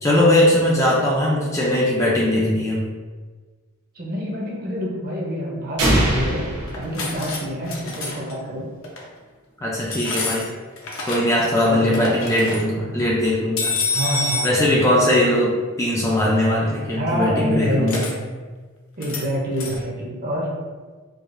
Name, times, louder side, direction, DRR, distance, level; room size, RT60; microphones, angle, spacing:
voice 1, 0.0-2.8 9.6-10.5 11.1-13.8 14.4-18.1, left 1 dB, 15° left, -4 dB, 0.4 m, -20 dB
voice 2, 4.0-6.5 6.7-8.7 11.6-12.2 13.9-15.4 16.9-18.3 19.0-20.5, equal, 40° right, -2 dB, 0.7 m, -27 dB
sound 1, 5.8-7.7, right 1 dB, 90° right, 1.0 m, -22 dB
sound 2, 6.7-7.4 7.6-8.3 8.8-9.1 9.9-11.4 11.7-12.6 13.6-14.5 17.9-18.1 19.0-19.3 19.5-19.8, left 3 dB, 65° left, 0.7 m, -27 dB
4.7 x 2.4 x 2.5 m, 1.4 s
head